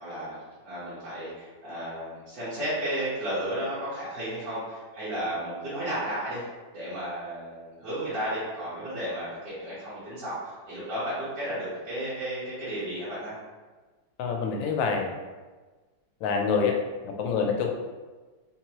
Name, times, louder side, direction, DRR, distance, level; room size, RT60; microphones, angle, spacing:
voice 1, 0.0-6.4 6.7-13.3, right 1 dB, 65° right, -14 dB, 2.0 m, -33 dB
voice 2, 14.2-15.1 16.2-16.8 17.0-17.7, left 5 dB, 80° left, 2 dB, 1.3 m, -26 dB
4.0 x 2.9 x 2.9 m, 1.3 s
omnidirectional pair, 2.1 m